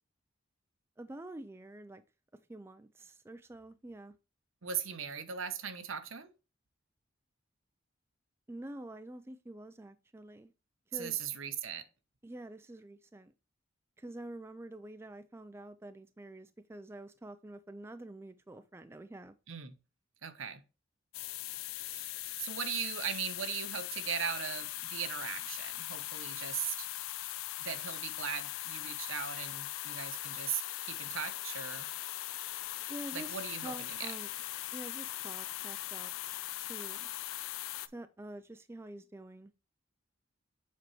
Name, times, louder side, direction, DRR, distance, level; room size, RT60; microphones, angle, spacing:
voice 1, 1.0-2.0 2.3-4.1 8.5-10.5 10.9-11.3 12.2-13.3 14.0-19.3 32.9-34.3 34.7-36.1 36.6-37.1 37.9-39.5, right 1 dB, 10° right, 0.3 m, -47 dB
voice 2, 4.6-6.3 10.9-11.8 19.5-19.8 20.2-20.6 21.9-22.1 22.4-26.9 27.6-31.9 33.1-34.1, right 7 dB, 80° right, 0.8 m, -39 dB
sound 1, 21.1-37.9, left 15 dB, 90° left, 0.4 m, -40 dB
7.5 x 4.5 x 3.0 m
head